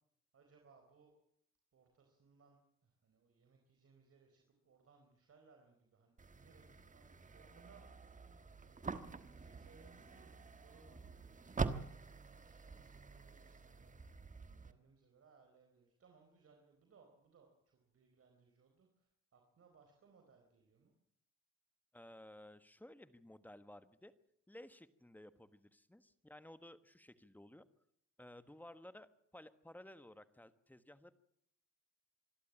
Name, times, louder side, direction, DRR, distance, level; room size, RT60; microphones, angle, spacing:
voice 1, 0.3-1.1 1.7-8.2 8.6-11.0 11.6-14.0 14.6-20.9, right 5 dB, 50° right, 3 dB, 4.3 m, -68 dB
sound 1, 6.2-14.7, right 4 dB, 25° right, 1.4 m, -46 dB
voice 2, 21.9-24.1 24.5-27.6 28.2-31.1, left 1 dB, 5° left, 12 dB, 1.5 m, -56 dB
26.0 x 12.0 x 8.8 m, 0.70 s
cardioid pair, 90°, 30 cm